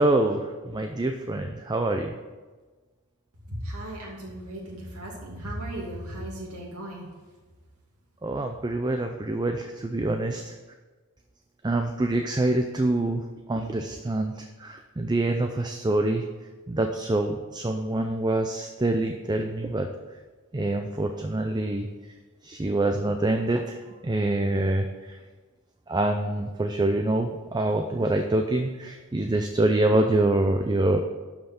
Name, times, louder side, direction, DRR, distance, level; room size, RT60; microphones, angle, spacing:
voice 1, 0.0-2.2 8.2-10.5 11.6-13.2 13.5-16.2 16.7-19.9 20.5-21.9 22.4-25.2 25.9-31.0, right 2 dB, 20° right, 5 dB, 0.5 m, -25 dB
voice 2, 3.5-7.1, right 1 dB, 80° right, -4 dB, 2.6 m, -36 dB
12.0 x 5.6 x 5.9 m, 1.3 s
head